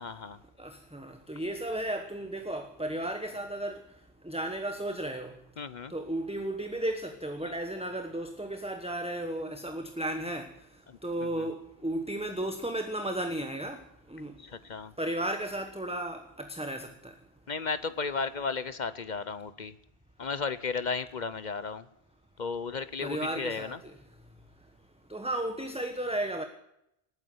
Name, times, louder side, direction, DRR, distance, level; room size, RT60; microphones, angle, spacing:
voice 1, 0.0-0.4 5.6-5.9 10.9-11.0 11.4-11.5 14.4-14.9 17.5-19.7 20.2-21.8 22.4-23.8, left 5 dB, 50° left, 15 dB, 0.8 m, -34 dB
voice 2, 0.6-3.8 4.2-5.4 5.9-10.5 11.0-13.8 14.1-14.4 15.0-17.1 23.0-23.9 25.1-26.4, right 1 dB, 5° right, 6 dB, 1.2 m, -34 dB
19.0 x 9.6 x 7.8 m, 0.81 s
omnidirectional pair, 1.1 m